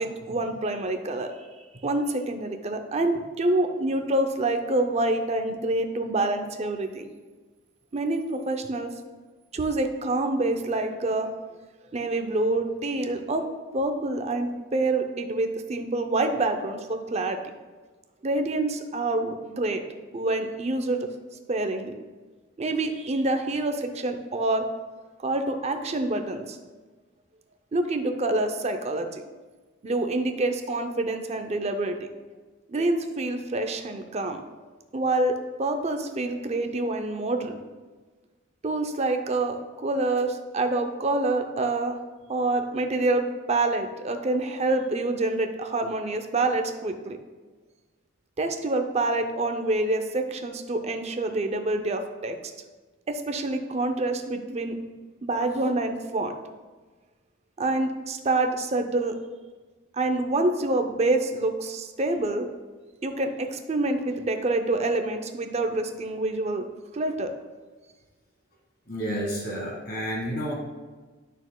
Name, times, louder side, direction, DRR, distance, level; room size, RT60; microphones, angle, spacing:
voice 1, 0.0-1.4 1.8-7.1 7.9-8.9 9.5-11.3 11.9-13.4 13.7-17.4 18.2-19.8 20.1-21.1 21.5-21.9 22.6-24.7 25.2-26.6 27.7-29.2 29.8-32.1 32.7-34.4 34.9-37.6 38.6-42.0 42.3-47.2 48.4-52.5 53.1-54.8 55.2-56.3 57.6-59.2 59.9-62.5 63.0-66.7 66.9-67.3, right 2 dB, 35° right, 6 dB, 0.5 m, -27 dB
voice 2, 68.9-70.5, equal, 50° left, -2 dB, 1.7 m, -30 dB
8.9 x 6.3 x 2.2 m, 1.3 s
head